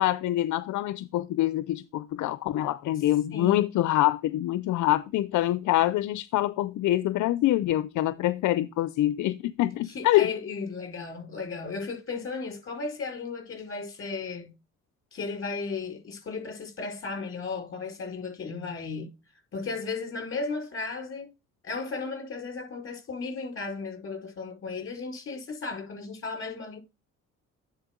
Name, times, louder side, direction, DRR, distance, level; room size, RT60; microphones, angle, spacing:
voice 1, 0.0-10.3, left 14 dB, 75° left, 0.5 m, -25 dB
voice 2, 3.3-3.6 9.9-14.5 15.1-19.1 19.5-21.3 21.6-26.8, left 4 dB, 45° left, 4.7 m, -35 dB
9.8 x 4.4 x 3.7 m
cardioid pair, 90°, 30 cm